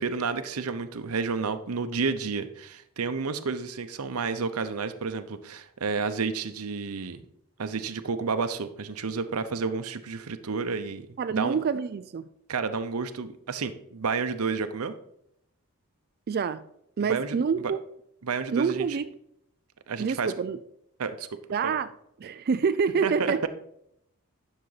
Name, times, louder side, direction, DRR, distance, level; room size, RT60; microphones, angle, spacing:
voice 1, 0.0-7.2 7.6-11.6 12.5-14.9 17.1-17.4 18.2-19.0 19.9-20.3 21.0-21.3 21.6-21.7 23.0-23.5, right 5 dB, 70° right, 0.7 m, -30 dB
voice 2, 11.2-12.2 16.3-16.6 17.0-17.8 18.5-19.1 20.0-20.6 21.5-21.9 22.2-23.4, right 6 dB, 45° right, 0.4 m, -27 dB
10.5 x 6.6 x 4.0 m
head